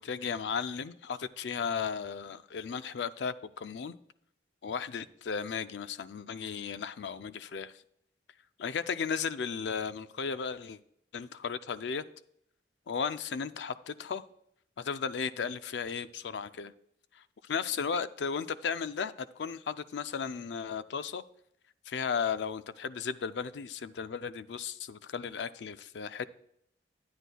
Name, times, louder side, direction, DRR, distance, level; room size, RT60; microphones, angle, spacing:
voice 1, 0.0-4.0 4.6-7.7 8.6-10.8 11.1-12.0 12.9-14.3 14.8-16.7 17.2-21.2 21.9-26.3, left 6 dB, 80° left, 0.4 m, -35 dB
10.0 x 9.4 x 2.2 m
head